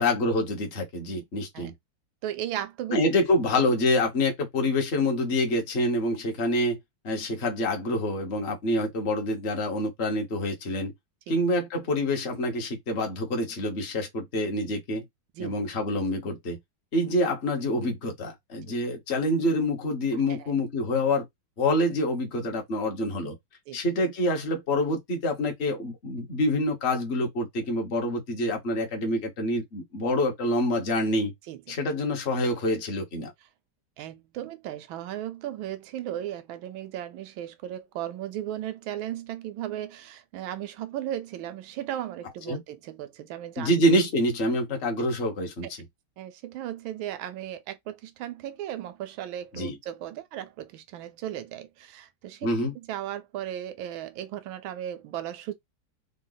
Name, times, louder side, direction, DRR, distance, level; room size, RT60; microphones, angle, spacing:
voice 1, 0.0-1.7 2.9-6.8 7.0-10.9 11.3-15.0 15.4-16.6 16.9-21.2 21.6-23.4 23.7-31.3 31.7-33.3 42.5-42.6 43.6-45.7 49.5-49.8 52.4-52.7, left 1 dB, 40° left, 1.1 m, -26 dB
voice 2, 2.2-3.0 11.3-11.4 15.4-15.5 18.7-18.8 20.3-20.4 23.7-23.8 31.5-31.8 34.0-43.7 45.6-45.7 46.2-52.5 52.8-55.5, right 12 dB, 90° right, 1.4 m, -36 dB
3.8 x 2.3 x 3.9 m
omnidirectional pair, 2.2 m